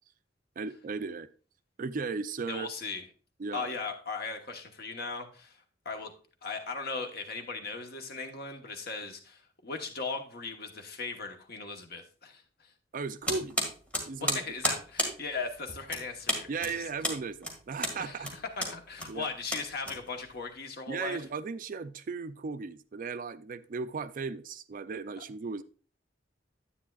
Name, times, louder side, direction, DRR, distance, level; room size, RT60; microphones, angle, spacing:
voice 1, 0.6-1.3 1.8-2.7 3.4-3.7 12.9-13.6 14.1-14.4 16.5-18.3 19.1-19.3 20.9-25.6, right 4 dB, 45° right, 0.4 m, -36 dB
voice 2, 2.5-3.1 3.5-5.6 5.8-6.1 6.4-12.7 14.2-16.8 18.0-21.2, left 4 dB, 55° left, 1.1 m, -38 dB
sound 1, 13.2-20.4, equal, 5° left, 1.8 m, -34 dB
10.0 x 8.7 x 2.3 m
head